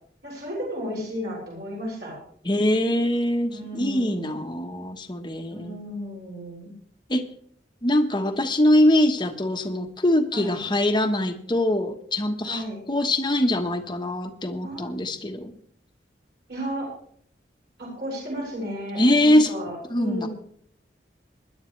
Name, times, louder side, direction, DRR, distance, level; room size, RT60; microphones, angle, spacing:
voice 1, 0.2-2.2 3.5-4.4 5.5-6.7 10.3-10.7 12.4-12.9 14.6-14.9 16.5-16.9 17.8-20.3, equal, 65° right, -5 dB, 6.7 m, -33 dB
voice 2, 2.4-5.8 7.1-7.2 7.8-15.5 19.0-19.5 19.9-20.3, left 1 dB, 25° left, 5 dB, 1.2 m, -23 dB
21.0 x 11.0 x 3.3 m, 0.62 s
head